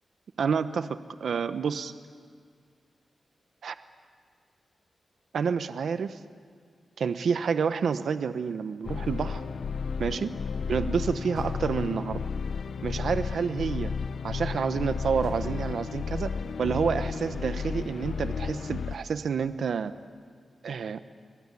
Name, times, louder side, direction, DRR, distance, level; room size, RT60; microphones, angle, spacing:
voice 1, 0.4-1.9 3.6-3.7 5.3-6.2 7.0-9.4 10.0-10.3 10.7-12.2 12.8-13.9 14.2-16.3 16.6-19.9 20.6-21.0, right 6 dB, 75° right, 11 dB, 1.0 m, -29 dB
sound 1, 8.8-19.0, left 5 dB, 75° left, 0.8 m, -33 dB
30.0 x 22.0 x 8.4 m, 2.1 s
wide cardioid pair, 120°, 0 cm